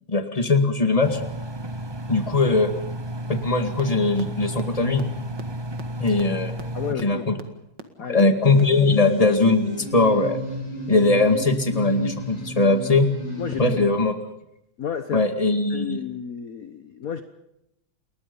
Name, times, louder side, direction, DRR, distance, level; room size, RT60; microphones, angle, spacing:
voice 1, 0.1-1.2 2.1-2.7 3.3-5.0 6.0-6.5 7.0-7.4 8.1-10.4 10.9-13.1 13.6-14.1 15.1-16.0, left 3 dB, 20° left, 7 dB, 2.1 m, -20 dB
Engine, 1.0-6.9, right 1 dB, 20° right, 0.8 m, -32 dB
sound 1, 3.8-3.9 4.2-4.3 4.6-4.7 5.0-5.1 5.4-5.5 5.8-5.9 6.2-6.3 6.6-6.7 7.0-7.1 7.4-7.5 7.8-7.9 8.2-8.3 8.6-8.7, right 6 dB, 65° right, 2.5 m, -37 dB
voice 2, 6.7-7.2 8.0-8.2 13.4-13.9 14.8-15.3 15.7-17.2, left 7 dB, 50° left, 9 dB, 1.5 m, -31 dB
sound 2, 8.5-13.9, right 1 dB, 70° left, 7.2 m, -32 dB
29.0 x 21.5 x 5.5 m, 0.81 s
omnidirectional pair, 2.1 m